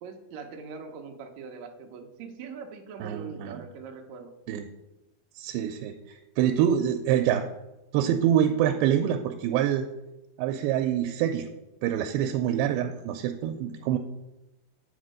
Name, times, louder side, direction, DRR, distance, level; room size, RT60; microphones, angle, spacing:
voice 1, 0.0-4.3, right 5 dB, 70° right, 3 dB, 1.7 m, -42 dB
voice 2, 3.0-3.5 4.5-4.6 5.4-7.5 7.9-9.9 10.4-11.5 11.8-14.0, right 10 dB, 90° right, 6 dB, 2.4 m, -26 dB
8.4 x 4.3 x 6.3 m, 0.97 s
omnidirectional pair, 4.2 m